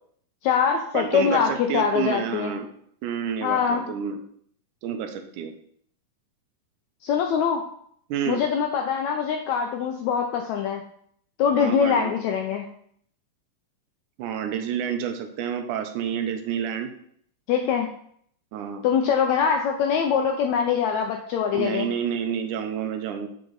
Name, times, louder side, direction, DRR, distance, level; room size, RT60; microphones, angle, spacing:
voice 1, 0.4-2.5 3.4-3.9 7.0-7.6 8.3-10.8 11.4-12.6 17.5-17.9 18.8-21.9, left 7 dB, 85° left, 3 dB, 1.6 m, -23 dB
voice 2, 0.9-2.7 3.0-4.2 4.8-5.5 8.1-8.4 11.6-12.1 14.2-16.9 18.5-18.9 21.5-23.3, right 8 dB, 75° right, 6 dB, 2.1 m, -29 dB
7.8 x 4.8 x 3.9 m, 0.65 s
omnidirectional pair, 3.9 m